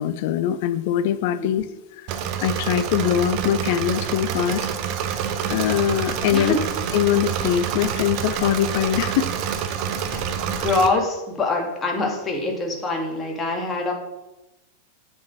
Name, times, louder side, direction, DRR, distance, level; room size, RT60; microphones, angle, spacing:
voice 1, 0.0-1.6 2.4-4.7 5.5-6.6 6.9-9.3, left 10 dB, 50° left, 14 dB, 0.6 m, -22 dB
Engine / Mechanisms, 2.1-10.9, right 8 dB, 40° right, 1.0 m, -27 dB
voice 2, 6.3-6.6 10.4-13.9, left 2 dB, 20° left, 1 dB, 2.3 m, -24 dB
Sliding door / Slam, 6.5-11.2, right 1 dB, ahead, 3.5 m, -44 dB
8.2 x 7.3 x 6.1 m, 1.0 s
figure-of-eight pair, 90°, 0 cm